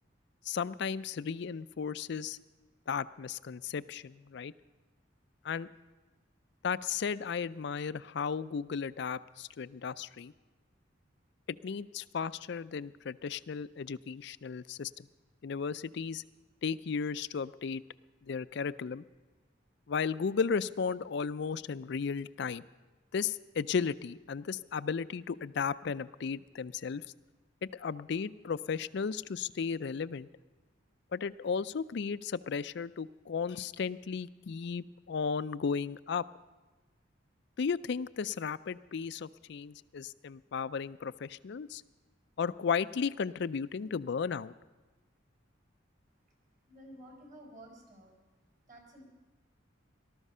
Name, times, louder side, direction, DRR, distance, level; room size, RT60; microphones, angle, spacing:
voice 1, 0.4-2.4 2.9-4.5 5.4-5.7 6.6-10.3 11.5-15.1 15.4-16.2 16.6-17.8 18.2-19.0 19.9-22.6 23.1-27.1 27.7-30.3 31.1-36.2 37.6-41.8 42.4-44.5, left 6 dB, 60° left, 16 dB, 0.4 m, -35 dB
voice 2, 46.7-48.2 48.7-49.0, right 1 dB, 40° right, 1 dB, 4.3 m, -52 dB
18.5 x 13.0 x 5.5 m, 1.2 s
head